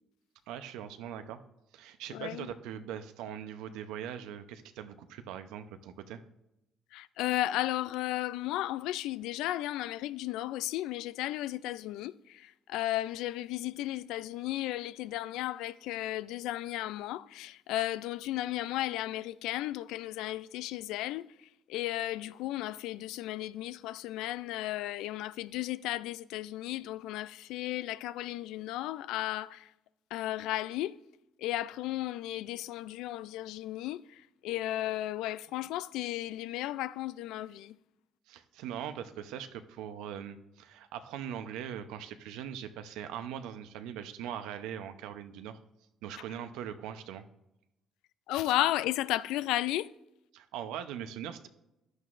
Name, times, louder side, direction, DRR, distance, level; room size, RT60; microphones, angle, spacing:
voice 1, 0.5-1.4 1.7-6.2 38.3-45.6 46.0-47.2 50.3-51.5, right 9 dB, 85° right, 0.7 m, -41 dB
voice 2, 2.1-2.5 6.9-29.7 30.1-31.0 31.4-37.8 48.3-49.9, left 15 dB, 85° left, 0.3 m, -34 dB
14.5 x 11.0 x 2.5 m
supercardioid pair, 70°, 0 cm